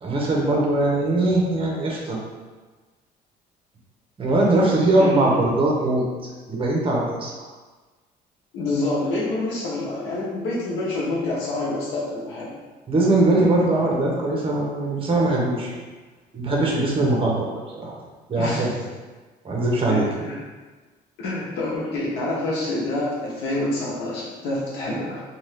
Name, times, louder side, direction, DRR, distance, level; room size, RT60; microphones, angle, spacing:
voice 1, 0.0-2.2 4.2-6.0 6.5-7.3 12.9-15.7 16.3-17.5 17.7-17.9 18.3-18.7 19.4-20.0, right 2 dB, 30° right, -2 dB, 0.8 m, -21 dB
voice 2, 5.0-5.4 8.5-12.5 18.4-18.7 19.9-20.4 21.2-25.2, left 2 dB, 85° left, -6 dB, 0.7 m, -27 dB
2.7 x 2.3 x 3.3 m, 1.3 s
cardioid pair, 110°, 17 cm